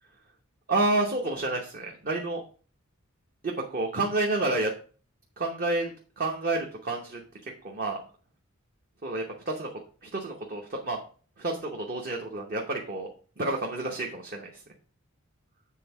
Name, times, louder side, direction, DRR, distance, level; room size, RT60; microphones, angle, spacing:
voice 1, 0.7-2.4 3.4-4.7 5.4-8.0 9.0-11.0 11.4-13.1 13.4-14.6, right 2 dB, 45° right, 0 dB, 1.0 m, -30 dB
7.6 x 3.7 x 5.9 m, 0.40 s
head